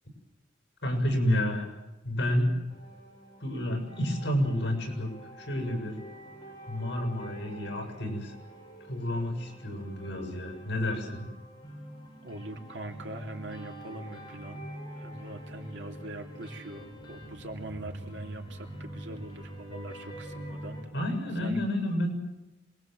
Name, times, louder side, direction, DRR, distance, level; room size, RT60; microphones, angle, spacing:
voice 1, 0.8-1.7 2.0-2.6 3.4-5.1 5.4-6.0 6.7-8.4 8.9-11.3 20.9-22.1, left 1 dB, 65° left, 3 dB, 7.1 m, -30 dB
sound 1, 2.7-20.8, equal, 25° left, 7.2 m, -46 dB
voice 2, 12.2-20.8 21.4-21.6, right 1 dB, 70° right, 3 dB, 3.0 m, -42 dB
27.0 x 21.5 x 7.9 m, 1.0 s
head